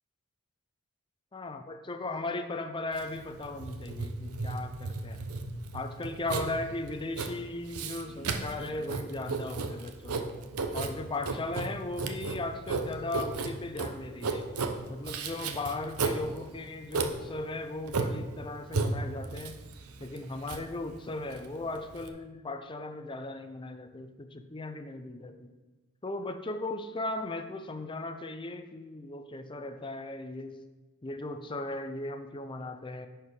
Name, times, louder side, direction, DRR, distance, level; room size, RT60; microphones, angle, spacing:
voice 1, 1.3-5.3 5.7-10.3 10.7-14.5 14.9-19.6 20.0-25.5 26.0-30.6 31.0-33.1, left 2 dB, 20° left, 8 dB, 0.5 m, -37 dB
Writing, 2.9-22.1, right 4 dB, 85° right, 0.7 m, -34 dB
10.5 x 4.7 x 4.8 m, 1.2 s
head